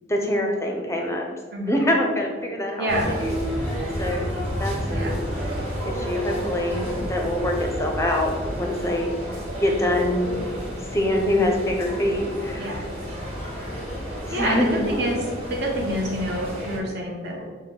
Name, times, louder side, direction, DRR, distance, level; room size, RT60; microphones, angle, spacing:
voice 1, 0.1-1.3 1.7-3.7 4.0-4.3 4.6-5.2 5.8-9.1 9.6-10.3 10.9-12.9 14.2-14.8, left 1 dB, 15° left, 1 dB, 0.6 m, -25 dB
sound 1, 2.9-16.8, equal, 30° right, 1.4 m, -31 dB
voice 2, 14.3-15.2 15.5-17.4, right 1 dB, 55° right, -2 dB, 0.9 m, -27 dB
6.4 x 2.1 x 3.8 m, 1.5 s
head